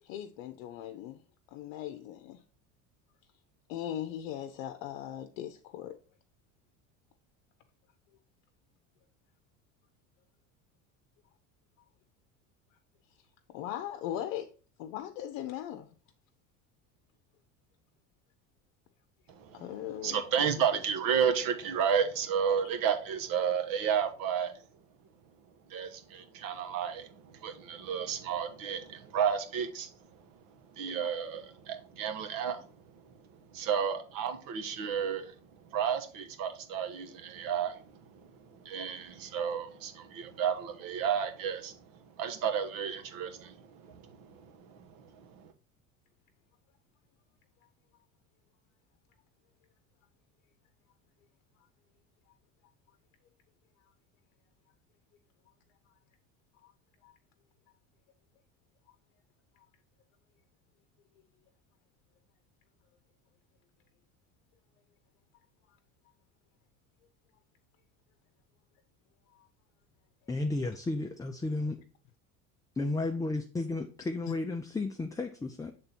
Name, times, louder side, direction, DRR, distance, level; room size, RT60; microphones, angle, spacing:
voice 1, 0.0-1.2 1.5-2.4 3.7-6.0 13.5-14.5 14.8-15.9 19.5-20.2 20.7-20.8 56.6-56.7 57.0-57.1 69.3-69.5 74.3-74.4, left 11 dB, 75° left, 0.7 m, -39 dB
voice 2, 19.3-24.5 25.7-29.9 30.7-32.6 33.0-33.1 33.5-35.3 35.6-45.5, right 7 dB, 60° right, 1.2 m, -32 dB
voice 3, 70.3-71.8 72.8-75.7, left 2 dB, 10° left, 0.5 m, -33 dB
6.7 x 3.6 x 4.2 m
supercardioid pair, 90°, 38 cm